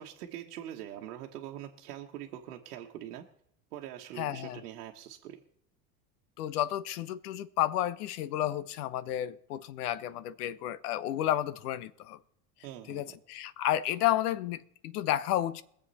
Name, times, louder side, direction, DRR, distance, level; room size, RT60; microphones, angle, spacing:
voice 1, 0.0-3.3 3.7-5.4 12.6-13.1, right 11 dB, 85° right, 1.3 m, -43 dB
voice 2, 4.2-4.6 6.4-12.2 12.9-15.6, left 13 dB, 85° left, 0.9 m, -31 dB
22.0 x 7.6 x 4.2 m
supercardioid pair, 105°, 45 cm